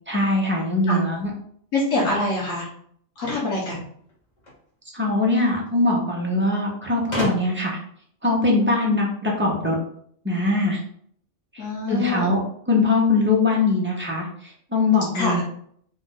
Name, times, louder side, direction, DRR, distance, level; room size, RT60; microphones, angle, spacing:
voice 1, 0.1-1.3 4.9-7.8 8.2-9.8 10.2-10.8 11.5-12.4 12.7-15.4, left 2 dB, 10° right, -3 dB, 0.8 m, -22 dB
voice 2, 1.7-2.7 3.2-3.8 11.6-12.3 15.1-15.4, left 2 dB, 90° left, -5 dB, 1.4 m, -25 dB
sound 1, 3.2-4.6 5.7-5.8 6.0-6.1 7.1-7.8, left 1 dB, 35° left, 1.3 m, -32 dB
3.8 x 2.5 x 3.8 m, 0.63 s
omnidirectional pair, 1.3 m